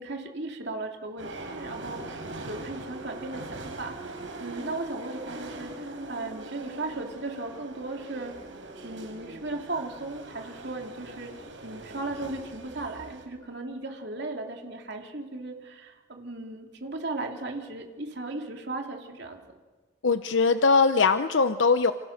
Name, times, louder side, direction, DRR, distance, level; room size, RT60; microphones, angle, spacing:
voice 1, 0.0-4.1 4.4-8.3 8.8-11.3 11.6-19.4, right 2 dB, 60° right, 2 dB, 3.0 m, -36 dB
sound 1, 1.2-13.2, right 2 dB, 75° right, 4.7 m, -41 dB
voice 2, 20.0-21.9, left 4 dB, 70° left, 10 dB, 0.8 m, -21 dB
28.5 x 27.5 x 6.6 m, 1.4 s
head